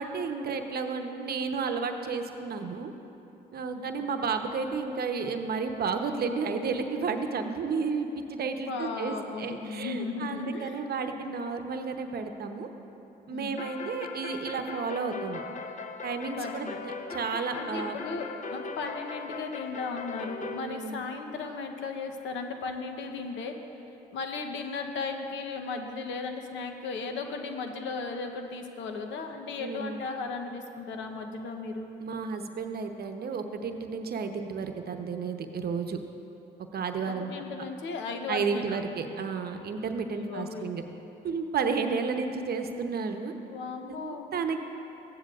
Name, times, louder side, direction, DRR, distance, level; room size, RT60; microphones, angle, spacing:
voice 1, 0.0-2.9 3.5-12.7 13.3-15.4 16.0-17.9 20.6-21.0 29.6-30.0 32.0-36.0 36.7-37.3 38.3-40.8 41.2-43.3 43.9-44.6, right 5 dB, 55° right, 6 dB, 0.8 m, -32 dB
voice 2, 8.7-10.9 13.3-13.6 16.4-16.8 17.5-23.5 24.1-31.9 37.0-38.8 40.1-40.7 43.5-44.3, left 4 dB, 75° left, 5 dB, 0.9 m, -36 dB
sound 1, 13.6-20.6, left 4 dB, 40° left, 0.7 m, -39 dB
15.0 x 9.7 x 2.4 m, 3.0 s
supercardioid pair, 60°, 19 cm